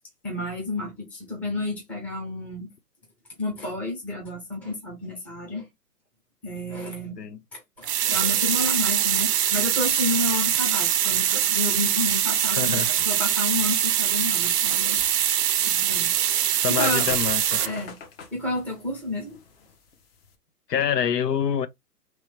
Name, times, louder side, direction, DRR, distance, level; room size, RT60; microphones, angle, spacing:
voice 1, 0.2-2.7 3.4-5.7 6.4-7.2 7.5-15.0 15.7-16.2 16.5-17.1 17.6-18.0 18.3-19.4, left 2 dB, 5° left, 0.6 m, -30 dB
sound 1, 7.8-17.7, right 10 dB, 80° right, 0.6 m, -23 dB
voice 2, 12.6-13.0 15.7-15.9 16.6-17.6 20.7-21.7, left 8 dB, 85° left, 0.7 m, -26 dB
sound 2, 14.4-20.4, left 5 dB, 40° left, 1.0 m, -44 dB
3.1 x 3.0 x 3.1 m
hypercardioid pair, 130°, 47 cm